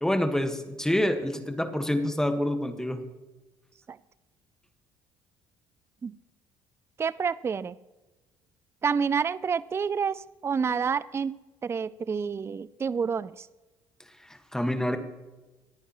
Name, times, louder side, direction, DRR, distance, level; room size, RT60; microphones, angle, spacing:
voice 1, 0.0-3.0 14.5-15.0, left 1 dB, 5° left, 7 dB, 1.5 m, -27 dB
voice 2, 7.0-7.8 8.8-11.3 11.6-13.5, right 6 dB, 25° right, 18 dB, 0.4 m, -28 dB
26.0 x 9.1 x 3.0 m, 1.1 s
supercardioid pair, 75°, 10 cm